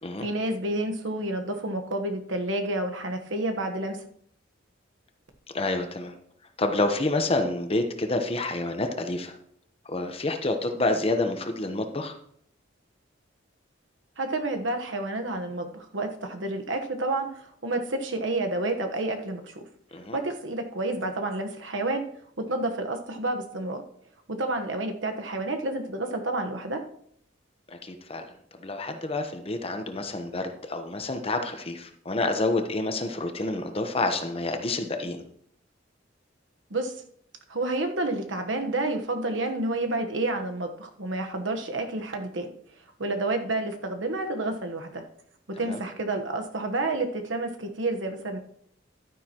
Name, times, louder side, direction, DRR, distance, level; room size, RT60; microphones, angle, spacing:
voice 1, 0.2-4.1 14.2-17.3 17.6-19.7 20.1-22.0 22.4-23.8 24.3-26.8 36.7-36.9 37.5-42.5 43.0-45.0 45.6-48.4, right 2 dB, 75° right, 5 dB, 1.2 m, -29 dB
voice 2, 5.5-6.1 6.6-9.3 9.8-12.1 19.9-20.2 27.7-28.2 28.6-35.2 45.6-45.8, left 2 dB, 30° left, 6 dB, 1.0 m, -28 dB
11.5 x 9.8 x 3.0 m, 0.66 s
head